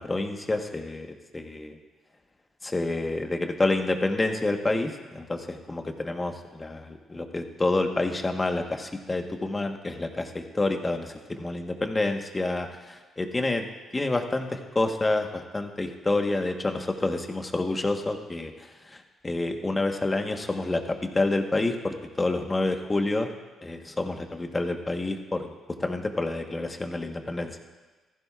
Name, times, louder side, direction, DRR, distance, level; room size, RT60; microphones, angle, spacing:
voice 1, 0.0-1.8 2.6-13.6 13.9-23.3 23.6-25.5 25.8-27.6, left 2 dB, 20° left, 4 dB, 1.2 m, -28 dB
15.5 x 14.5 x 2.5 m, 1.3 s
cardioid pair, 90°, 0 cm